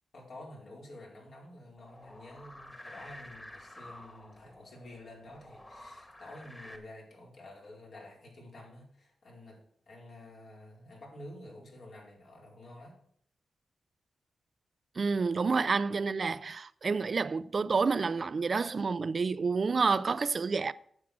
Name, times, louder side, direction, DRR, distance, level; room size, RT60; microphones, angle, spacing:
voice 1, 0.1-12.9 16.1-16.2, left 1 dB, 65° left, 4.6 m, -50 dB
sound 1, 1.8-6.8, left 1 dB, 15° left, 1.8 m, -50 dB
voice 2, 15.0-20.7, right 4 dB, 45° right, 0.4 m, -29 dB
9.6 x 7.5 x 6.1 m
wide cardioid pair, 100°, 0 cm